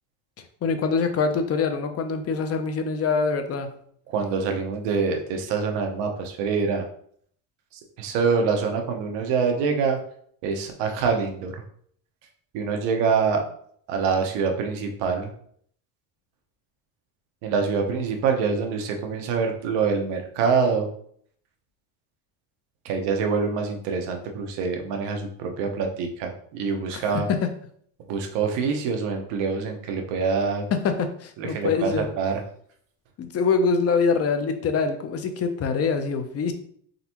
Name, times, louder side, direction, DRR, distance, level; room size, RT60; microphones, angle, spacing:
voice 1, 0.6-3.7 26.9-27.0 27.3-27.5 30.7-32.1 33.2-36.5, left 5 dB, 35° left, 7 dB, 0.5 m, -24 dB
voice 2, 4.1-6.9 8.0-10.0 10.4-11.6 12.5-13.4 13.9-15.3 17.4-20.9 22.8-27.3 28.1-30.7 31.4-32.4, right 5 dB, 85° right, 4 dB, 0.9 m, -25 dB
3.9 x 3.4 x 2.9 m, 0.62 s
cardioid pair, 130°, 42 cm